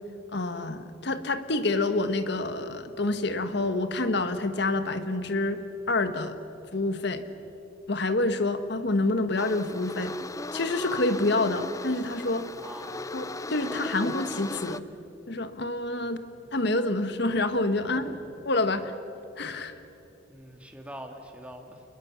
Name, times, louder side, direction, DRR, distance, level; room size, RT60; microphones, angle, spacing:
voice 1, 0.3-5.6 5.9-6.4 6.7-7.2 7.9-10.1 10.5-12.5 13.1-14.8 15.3-16.2 16.5-18.1 18.4-18.9 19.4-19.7, left 2 dB, 60° left, 10 dB, 1.4 m, -27 dB
sound 1, 9.4-14.8, left 2 dB, 15° left, 0.5 m, -37 dB
voice 2, 12.5-13.1 16.0-16.2 17.9-18.2 19.6-19.7 20.3-21.8, right 1 dB, 5° right, 3 dB, 1.8 m, -45 dB
29.0 x 21.0 x 7.3 m, 2.8 s
head